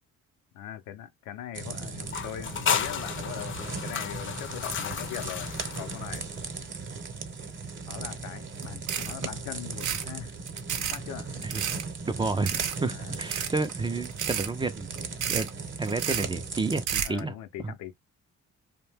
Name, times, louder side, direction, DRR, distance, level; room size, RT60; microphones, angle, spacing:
voice 1, 0.5-6.3 7.9-10.3 10.8-11.3 12.9-13.2 17.0-17.9, left 11 dB, 85° left, 0.6 m, -41 dB
sound 1, 1.5-16.8, right 4 dB, 40° right, 0.8 m, -38 dB
sound 2, 2.1-6.6, left 8 dB, 40° left, 0.5 m, -33 dB
sound 3, 8.6-8.7 8.9-9.2 9.7-10.1 10.5-11.0 11.4-11.8 12.5-12.8 13.1-13.7 14.0-14.5 14.9-15.5 15.9-16.3 16.7-17.2, right 9 dB, 75° right, 0.6 m, -31 dB
voice 2, 12.1-14.9 15.3-15.5 15.8-17.3 17.6-17.7, right 3 dB, 15° right, 0.3 m, -30 dB
2.7 x 2.1 x 3.3 m
cardioid pair, 90°, 30 cm